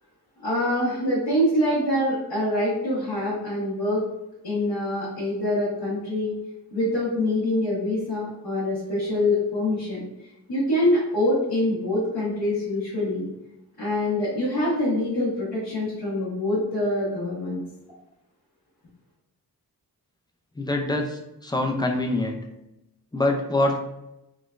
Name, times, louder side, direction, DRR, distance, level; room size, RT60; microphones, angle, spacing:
voice 1, 0.4-4.0 4.4-6.3 6.7-10.0 10.5-13.3 13.8-17.6, left 1 dB, 70° left, -10 dB, 1.3 m, -25 dB
voice 2, 20.6-22.4 23.1-23.8, left 2 dB, 10° left, 2 dB, 0.4 m, -25 dB
3.7 x 2.2 x 2.5 m, 0.89 s
wide cardioid pair, 85°, 39 cm